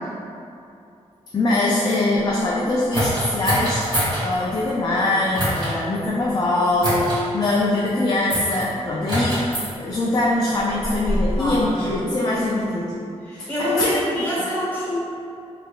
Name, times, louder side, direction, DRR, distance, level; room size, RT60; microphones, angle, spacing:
voice 1, 1.3-3.9 4.2-11.8 12.0-13.0 13.3-14.3, left 2 dB, 35° left, -5 dB, 0.3 m, -22 dB
sound 1, 2.9-4.2 5.3-5.7 6.8-7.2 8.3-8.6 9.1-9.7 10.6-12.0, equal, 45° right, 1.5 m, -24 dB
voice 2, 11.3-11.7 13.3-15.0, equal, 15° left, -9 dB, 1.1 m, -25 dB
3.6 x 3.2 x 2.3 m, 2.6 s
wide cardioid pair, 160°, 12 cm